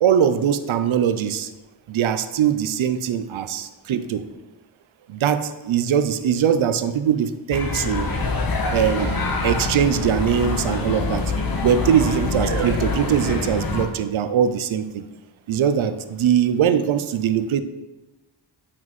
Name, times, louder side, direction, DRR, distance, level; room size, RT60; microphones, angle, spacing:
voice 1, 0.0-1.5 1.9-4.2 5.1-8.1 8.7-11.2 11.6-15.0 15.5-17.6, right 8 dB, 85° right, 11 dB, 0.6 m, -21 dB
sound 1, 7.5-13.8, left 3 dB, 50° left, 1.1 m, -25 dB
9.1 x 5.8 x 3.1 m, 1.1 s
wide cardioid pair, 130°, 47 cm